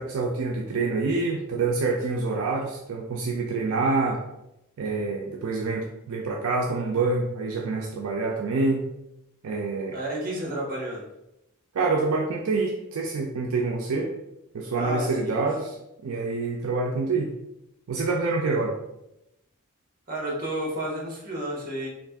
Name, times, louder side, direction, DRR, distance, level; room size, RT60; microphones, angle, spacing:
voice 1, 0.0-4.2 4.8-8.9 9.4-10.0 11.7-14.1 14.5-15.8 16.0-17.3 17.9-18.8, right 3 dB, 75° right, -1 dB, 0.4 m, -26 dB
voice 2, 9.9-11.0 14.8-15.4 20.1-21.9, right 1 dB, 40° right, -3 dB, 1.0 m, -31 dB
2.6 x 2.5 x 3.5 m, 0.87 s
head